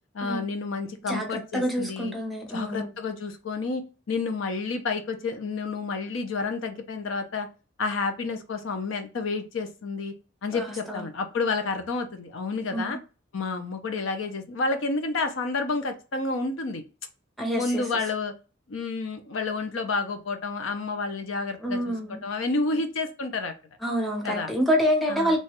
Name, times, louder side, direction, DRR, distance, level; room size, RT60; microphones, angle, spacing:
voice 1, 0.1-2.1 2.5-7.5 7.8-10.1 10.4-13.0 13.3-16.8 17.5-18.3 18.7-23.5 24.2-24.5 25.1-25.4, left 3 dB, 75° left, 6 dB, 0.5 m, -30 dB
voice 2, 1.5-2.9 10.5-11.0 12.7-13.0 17.4-17.8 21.6-22.2 23.8-25.4, equal, ahead, 0 dB, 0.7 m, -27 dB
3.0 x 2.3 x 2.9 m, 0.32 s
head